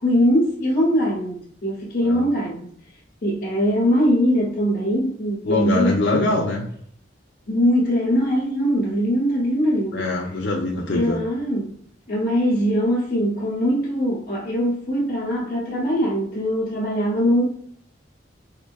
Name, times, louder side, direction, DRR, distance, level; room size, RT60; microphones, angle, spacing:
voice 1, 0.0-2.7 3.2-6.2 7.5-10.1 10.9-11.7 12.1-17.4, equal, 45° left, 1.0 m, -21 dB
voice 2, 5.4-6.7 9.9-11.2, left 2 dB, 70° left, 0.5 m, -23 dB
4.7 x 2.6 x 2.3 m
head